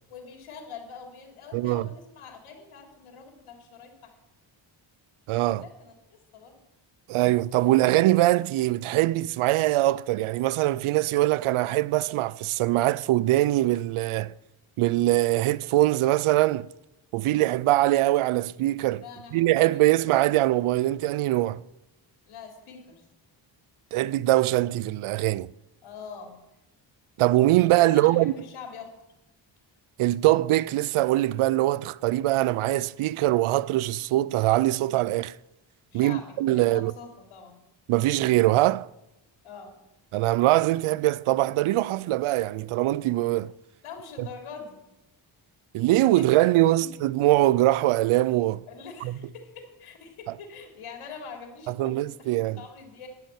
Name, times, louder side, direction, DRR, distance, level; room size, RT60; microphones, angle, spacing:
voice 1, 0.1-4.2 5.6-5.9 6.3-6.6 19.0-19.8 22.3-23.1 25.8-26.4 27.8-29.0 35.9-37.6 39.4-39.8 43.8-44.9 46.2-46.5 46.8-46.9 47.3-47.4 48.7-52.3 52.6-53.1, left 5 dB, 90° left, 3.2 m, -44 dB
voice 2, 1.5-1.9 5.3-5.6 7.1-14.3 14.8-16.7 17.1-19.0 19.3-21.6 23.9-25.5 27.2-28.3 30.0-35.4 35.9-36.9 37.9-38.9 40.1-43.5 45.7-48.6 49.0-49.2 51.7-52.6, right 16 dB, 85° right, 0.6 m, -22 dB
11.5 x 10.5 x 7.4 m
cardioid pair, 70°, 49 cm